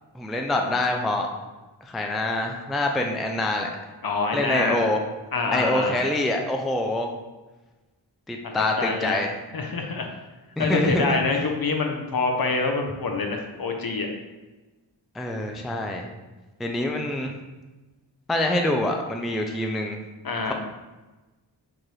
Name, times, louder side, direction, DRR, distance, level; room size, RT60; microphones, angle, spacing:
voice 1, 0.1-1.3 1.8-3.7 4.3-5.0 5.5-7.1 8.3-9.3 10.6-11.2 15.1-16.1 16.6-17.3 18.3-20.0, left 1 dB, ahead, 2 dB, 0.4 m, -25 dB
voice 2, 4.0-4.9 5.3-6.0 8.5-9.3 9.5-10.1 10.6-14.1 20.2-20.5, left 3 dB, 50° left, 3 dB, 0.7 m, -26 dB
4.7 x 2.6 x 3.1 m, 1.2 s
cardioid pair, 40°, 45 cm